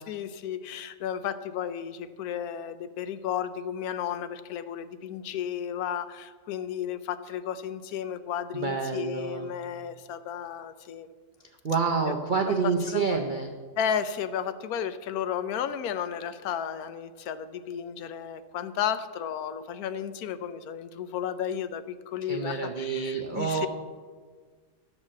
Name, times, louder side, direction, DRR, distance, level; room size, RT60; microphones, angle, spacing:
voice 1, 0.1-11.1 12.5-13.2 13.8-23.7, left 8 dB, 70° left, 12 dB, 1.0 m, -33 dB
voice 2, 8.5-9.6 11.6-13.6 22.3-23.7, right 5 dB, 60° right, 3 dB, 0.5 m, -28 dB
12.5 x 4.9 x 7.4 m, 1.5 s
omnidirectional pair, 1.7 m